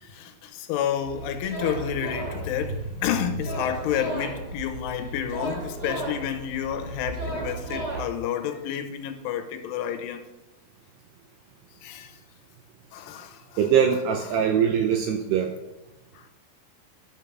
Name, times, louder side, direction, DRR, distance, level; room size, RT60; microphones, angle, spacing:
voice 1, 0.0-10.2 11.8-12.1 12.9-13.4 16.1-16.2, left 10 dB, 90° left, 3.3 m, -30 dB
sound 1, 1.0-8.0, right 2 dB, 25° right, 2.7 m, -34 dB
voice 2, 13.6-15.5, right 8 dB, 85° right, 2.4 m, -22 dB
12.0 x 5.3 x 6.2 m
omnidirectional pair, 5.6 m